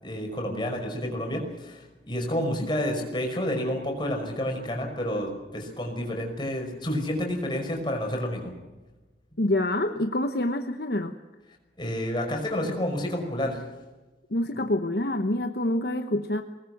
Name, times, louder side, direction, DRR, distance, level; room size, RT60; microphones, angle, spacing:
voice 1, 0.0-8.4 11.8-13.6, left 1 dB, 25° left, 2 dB, 5.5 m, -29 dB
voice 2, 9.4-11.2 14.3-16.4, left 1 dB, 55° left, 7 dB, 1.0 m, -26 dB
24.0 x 19.5 x 7.9 m, 1.2 s
head